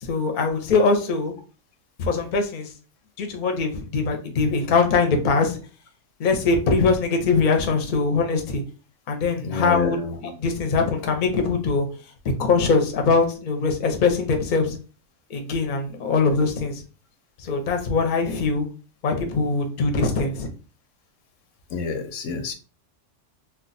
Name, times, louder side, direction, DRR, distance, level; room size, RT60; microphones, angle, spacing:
voice 1, 0.0-1.3 2.0-2.7 3.2-5.6 6.2-8.6 9.1-11.9 12.4-14.8 15.3-16.8 17.4-18.7 19.0-20.5, left 4 dB, 50° left, 4 dB, 0.7 m, -22 dB
voice 2, 9.4-10.1 21.7-22.5, left 4 dB, 80° left, 7 dB, 1.0 m, -29 dB
2.3 x 2.2 x 3.9 m, 0.35 s
omnidirectional pair, 1.3 m